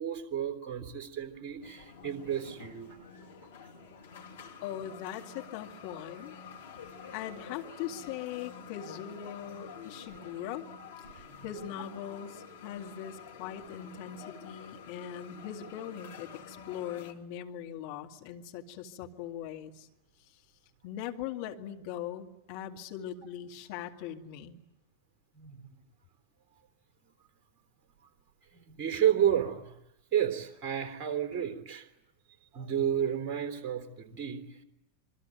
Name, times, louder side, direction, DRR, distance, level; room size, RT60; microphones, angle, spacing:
voice 1, 0.0-3.0 7.0-7.1 11.3-11.5 25.3-25.7 28.5-29.7 30.1-31.9 32.5-34.4, right 9 dB, 35° right, 7 dB, 3.6 m, -31 dB
sound 1, 1.6-17.1, left 6 dB, 65° left, 3.2 m, -48 dB
voice 2, 4.6-6.4 7.1-10.7 11.0-19.9 20.2-20.4 20.8-24.6, left 10 dB, 45° left, 3 dB, 2.2 m, -41 dB
27.5 x 22.5 x 9.2 m, 0.83 s
figure-of-eight pair, 90°, 0 cm